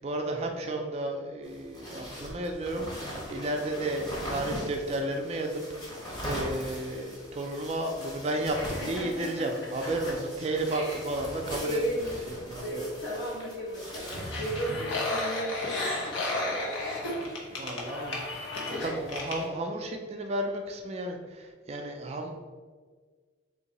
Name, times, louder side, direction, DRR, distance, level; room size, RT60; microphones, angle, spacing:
voice 1, 0.0-5.7 5.9-12.1 12.4-12.8 17.5-18.5 18.8-22.4, right 1 dB, 30° right, 3 dB, 0.3 m, -33 dB
sound 1, 1.4-14.7, equal, 20° left, 0.9 m, -40 dB
voice 2, 8.5-10.2 10.7-11.1 11.6-12.0 12.6-17.1, right 1 dB, 65° left, -5 dB, 1.4 m, -36 dB
sound 2, 14.0-19.5, left 2 dB, 85° left, 0.9 m, -33 dB
3.8 x 2.7 x 4.0 m, 1.5 s
head